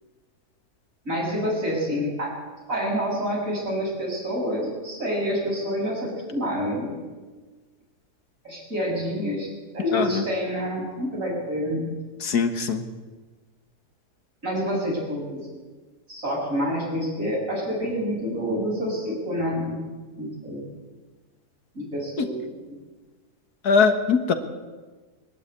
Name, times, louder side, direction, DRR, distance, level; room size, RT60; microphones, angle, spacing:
voice 1, 1.1-2.3 2.7-7.0 8.4-9.5 9.7-11.9 14.4-15.4 16.1-19.8 20.2-20.7 21.8-22.5, equal, 55° right, -2 dB, 6.9 m, -27 dB
voice 2, 9.9-10.2 12.2-12.8 22.2-22.3 23.6-24.3, left 5 dB, 75° left, 7 dB, 1.9 m, -21 dB
21.5 x 12.5 x 9.8 m, 1.3 s
omnidirectional pair, 1.7 m